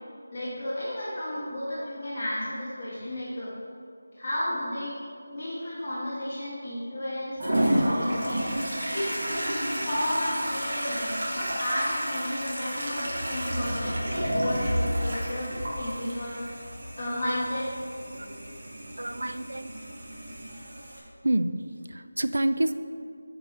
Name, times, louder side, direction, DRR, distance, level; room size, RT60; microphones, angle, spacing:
voice 1, 0.3-3.5 4.1-5.0 5.3-8.4 8.9-15.5 15.8-16.4 17.0-17.7, left 1 dB, 15° left, -15 dB, 1.1 m, -32 dB
Toilet flush, 7.4-21.0, equal, 40° right, 1.3 m, -31 dB
voice 2, 19.0-19.7 21.2-21.6 21.9-22.7, right 1 dB, 85° right, 11 dB, 0.4 m, -27 dB
6.5 x 4.6 x 4.4 m, 2.3 s
figure-of-eight pair, 175°, 0 cm